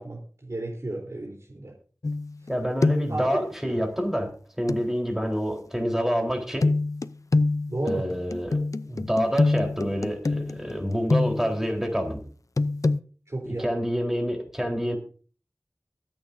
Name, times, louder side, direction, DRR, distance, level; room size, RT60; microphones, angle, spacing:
voice 1, 0.0-1.7 3.1-3.8 7.7-8.1 13.3-13.7, right 2 dB, 55° right, -1 dB, 3.8 m, -33 dB
sound 1, 2.0-2.5 2.8-3.2 4.7-4.8 6.6-11.6 12.6-13.0, left 3 dB, 65° left, 0.6 m, -25 dB
voice 2, 2.5-6.7 7.9-12.2 13.4-15.0, equal, 5° right, 2 dB, 4.1 m, -27 dB
23.5 x 8.7 x 2.7 m, 0.40 s
wide cardioid pair, 40°, 6 cm